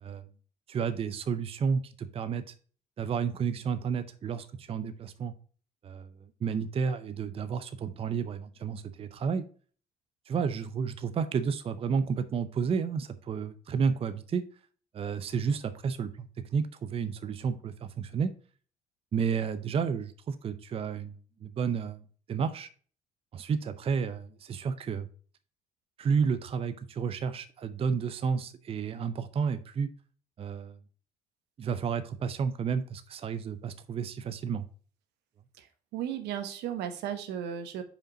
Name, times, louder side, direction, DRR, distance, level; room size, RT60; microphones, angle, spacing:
voice 1, 0.7-2.5 3.0-5.3 5.8-6.1 6.4-9.4 10.3-14.4 14.9-18.3 19.1-22.7 23.3-25.1 26.0-29.9 30.4-30.8 31.6-34.7, right 6 dB, 35° right, 12 dB, 0.5 m, -31 dB
voice 2, 35.9-37.8, right 9 dB, 85° right, 8 dB, 1.0 m, -35 dB
5.1 x 5.1 x 4.0 m, 0.42 s
cardioid pair, 110°, 17 cm